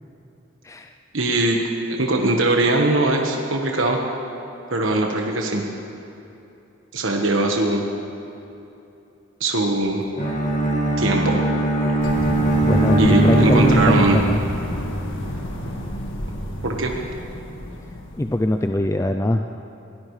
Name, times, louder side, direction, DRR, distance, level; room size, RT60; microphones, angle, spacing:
voice 1, 1.1-1.6 1.9-4.0 4.7-5.6 6.9-7.8 9.4-10.0 11.0-11.4 13.0-14.2 16.6-16.9, right 2 dB, 75° right, 1 dB, 1.3 m, -21 dB
Bowed string instrument, 10.2-14.6, right 2 dB, 35° left, 1.9 m, -20 dB
sound 1, 12.0-18.8, equal, 70° left, 1.8 m, -28 dB
voice 2, 12.6-14.4 18.2-19.6, left 1 dB, 15° left, 5 dB, 0.4 m, -22 dB
23.5 x 17.5 x 3.3 m, 2.8 s
head